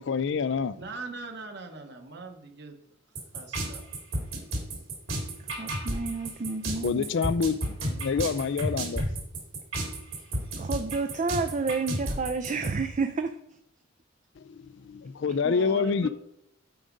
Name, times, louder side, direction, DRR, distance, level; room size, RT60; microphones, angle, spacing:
voice 1, 0.0-0.7 6.8-7.6 7.8-9.0 14.5-16.1, left 5 dB, 60° left, 0.4 m, -27 dB
voice 2, 0.8-2.8 3.3-3.8 15.4-16.1, right 2 dB, 55° right, 1.1 m, -40 dB
sound 1, 3.1-12.7, right 1 dB, 80° right, 3.3 m, -31 dB
voice 3, 5.4-7.1 10.6-13.3 15.3-15.4, right 4 dB, 35° right, 0.4 m, -30 dB
7.7 x 5.0 x 5.2 m
head